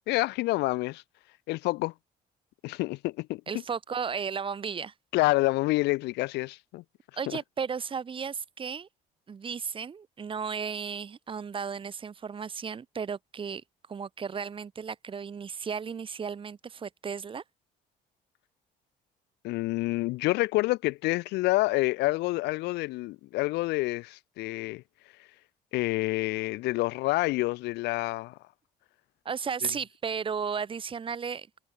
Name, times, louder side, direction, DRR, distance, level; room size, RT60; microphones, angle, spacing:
voice 1, 0.1-1.0 1.5-1.9 2.6-3.4 5.1-6.8 7.3-7.4 19.4-24.8 25.7-28.4, left 20 dB, 80° left, 0.5 m, -28 dB
voice 2, 3.5-4.9 7.2-8.9 9.3-13.6 13.9-17.4 29.2-31.5, right 6 dB, 30° right, 1.2 m, -34 dB
cardioid pair, 110°, 17 cm